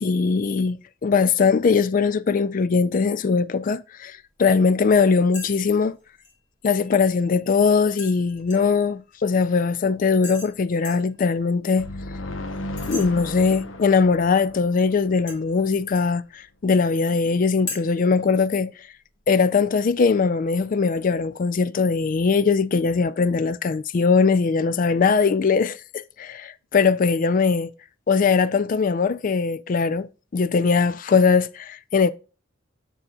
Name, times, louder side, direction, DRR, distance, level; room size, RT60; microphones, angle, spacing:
voice 1, 0.0-6.0 6.6-11.9 12.9-18.7 19.3-27.7 28.1-32.1, left 5 dB, 45° left, 0.4 m, -21 dB
sound 1, 5.3-5.5 5.8-6.3 8.0-8.8 10.2-10.5 10.8-11.1 12.8-13.1 15.3-16.1 17.7-17.8, left 3 dB, 60° left, 1.9 m, -36 dB
sound 2, 11.8-15.5, left 1 dB, 90° left, 0.9 m, -35 dB
7.5 x 6.4 x 2.3 m
head